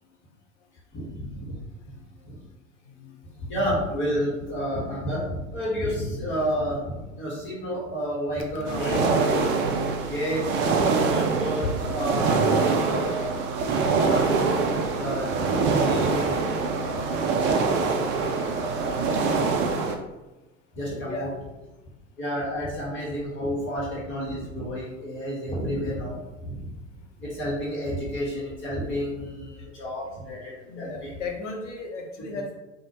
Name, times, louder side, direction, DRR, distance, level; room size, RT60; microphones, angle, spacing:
voice 1, 0.9-1.5 1.8-1.9 2.2-2.4 3.5-9.4 10.0-13.3 14.1-14.6 14.9-19.2 20.7-21.3 22.2-26.7 27.2-31.2, equal, 30° left, -5 dB, 1.5 m, -31 dB
voice 2, 8.5-9.0 21.1-21.3 30.7-32.6, left 3 dB, 70° left, 1 dB, 0.9 m, -35 dB
sound 1, 8.7-20.0, right 4 dB, 30° right, 0.4 m, -24 dB
4.1 x 2.4 x 3.0 m, 1.0 s
figure-of-eight pair, 85°, 38 cm